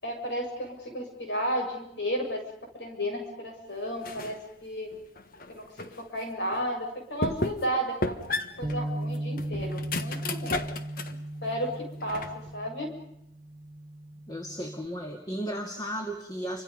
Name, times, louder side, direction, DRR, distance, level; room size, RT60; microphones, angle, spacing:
voice 1, 0.0-2.4 2.7-4.9 5.5-8.2 8.6-10.7 11.4-12.2 12.5-12.9, equal, 70° left, 2 dB, 7.6 m, -33 dB
sound 1, 4.0-4.4 4.9-6.0 6.5-6.6 7.2-7.7 8.0-11.2 11.6-12.5, left 2 dB, 50° left, 1.4 m, -34 dB
Bass guitar, 8.6-14.9, right 1 dB, 30° right, 1.6 m, -37 dB
voice 2, 14.3-16.6, equal, 20° left, 3 dB, 2.3 m, -35 dB
30.0 x 26.0 x 5.4 m, 0.78 s
head